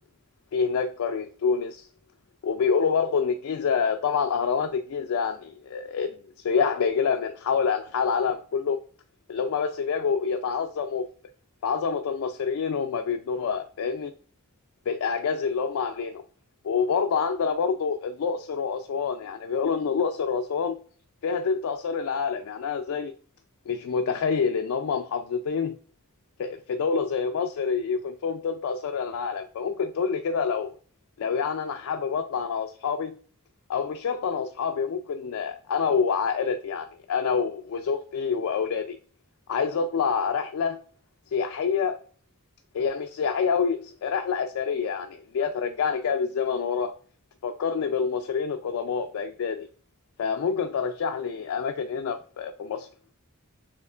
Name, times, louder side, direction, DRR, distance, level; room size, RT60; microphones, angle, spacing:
voice 1, 0.5-1.9 2.4-8.8 9.3-11.1 11.6-14.1 14.9-16.2 16.6-20.7 21.2-23.1 23.7-25.8 26.4-30.7 31.2-33.2 33.7-39.0 39.5-40.8 41.3-42.0 42.7-46.9 47.4-49.7 50.2-52.9, left 6 dB, 75° left, 0.3 m, -27 dB
6.5 x 2.9 x 2.4 m
head